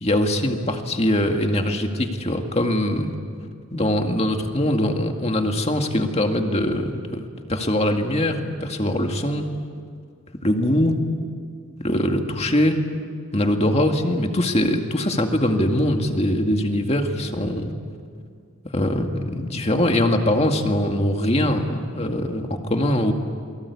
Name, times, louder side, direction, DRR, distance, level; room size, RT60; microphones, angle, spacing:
voice 1, 0.0-3.1 3.7-7.2 7.5-9.4 10.4-11.0 11.8-12.8 13.3-17.7 18.7-23.1, left 1 dB, 30° left, 4 dB, 2.1 m, -22 dB
29.0 x 23.5 x 8.4 m, 2.3 s
head